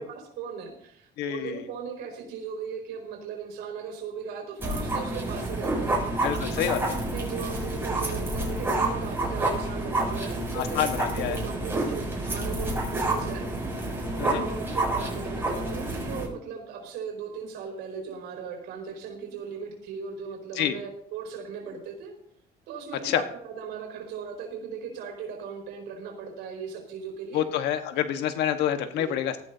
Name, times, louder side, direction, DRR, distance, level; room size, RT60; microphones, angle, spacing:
voice 1, 0.0-6.0 6.7-13.5 14.2-22.1 22.7-27.5 29.0-29.1, right 6 dB, 85° right, 1 dB, 5.0 m, -38 dB
voice 2, 1.2-1.6 6.2-6.9 10.5-11.4 14.2-14.4 20.6-20.8 23.0-23.2 27.3-29.4, left 10 dB, 85° left, 8 dB, 1.4 m, -27 dB
sound 1, 4.6-16.3, right 2 dB, 15° right, 7.4 m, -29 dB
19.0 x 14.0 x 2.8 m, 0.67 s
cardioid pair, 110°, 17 cm